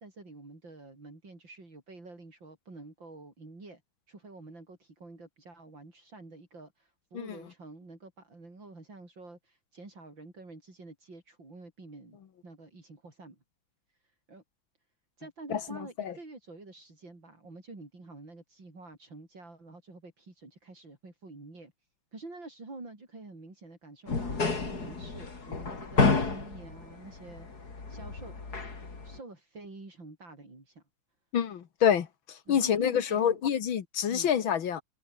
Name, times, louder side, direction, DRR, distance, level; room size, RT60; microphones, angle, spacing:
voice 1, 0.0-3.8 4.1-12.2 12.4-13.4 14.0-14.4 15.2-21.7 22.1-28.4 29.0-30.8 32.5-33.4 34.1-34.3, right 3 dB, 70° right, 7.0 m, -48 dB
sound 1, 24.1-29.2, left 4 dB, 50° left, 3.9 m, -30 dB
voice 2, 31.3-34.8, left 8 dB, 85° left, 2.3 m, -27 dB
omnidirectional pair, 2.1 m